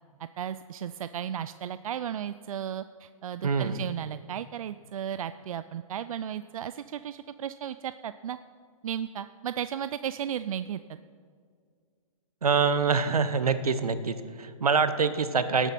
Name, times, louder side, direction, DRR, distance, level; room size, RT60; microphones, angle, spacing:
voice 1, 0.4-8.4 8.8-10.8, right 9 dB, 70° right, 13 dB, 0.4 m, -35 dB
voice 2, 3.4-3.8 12.4-15.7, right 5 dB, 90° right, 12 dB, 0.9 m, -25 dB
18.0 x 9.1 x 4.2 m, 2.1 s
hypercardioid pair, 130°, 19 cm